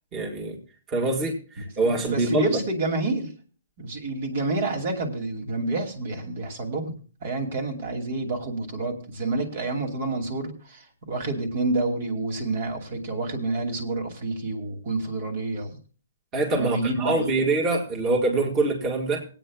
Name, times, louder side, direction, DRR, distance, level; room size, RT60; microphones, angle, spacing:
voice 1, 0.1-0.6 0.9-2.5 16.3-19.3, right 2 dB, 20° right, 0 dB, 2.1 m, -24 dB
voice 2, 1.8-3.3 3.8-15.8 16.5-17.5, right 2 dB, 50° right, 3 dB, 2.5 m, -29 dB
26.0 x 9.0 x 2.4 m, 0.38 s
hypercardioid pair, 150°, 0 cm